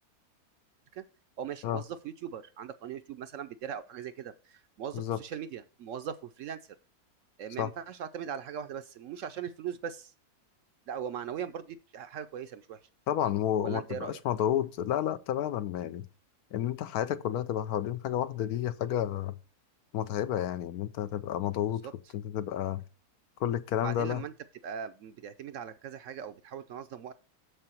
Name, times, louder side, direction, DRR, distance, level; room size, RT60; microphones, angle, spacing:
voice 1, 1.4-6.6 7.4-10.1 10.9-12.8 13.6-14.2 21.8-21.9 23.8-24.3 24.6-27.1, right 8 dB, 65° right, 0.8 m, -39 dB
voice 2, 13.1-16.1 16.5-19.3 19.9-21.9 22.1-22.8 23.4-24.2, left 11 dB, 80° left, 1.1 m, -31 dB
7.0 x 6.7 x 4.4 m
omnidirectional pair, 1.6 m